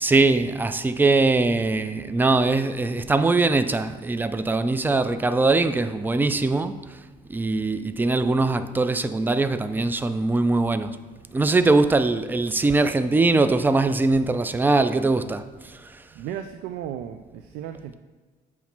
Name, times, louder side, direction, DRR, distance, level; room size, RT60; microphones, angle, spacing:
voice 1, 0.0-7.0 7.3-11.0 11.3-16.0, right 3 dB, 10° right, 0.3 m, -22 dB
voice 2, 16.2-18.0, right 10 dB, 80° right, 0.4 m, -35 dB
7.2 x 3.1 x 5.8 m
cardioid pair, 110°, 17 cm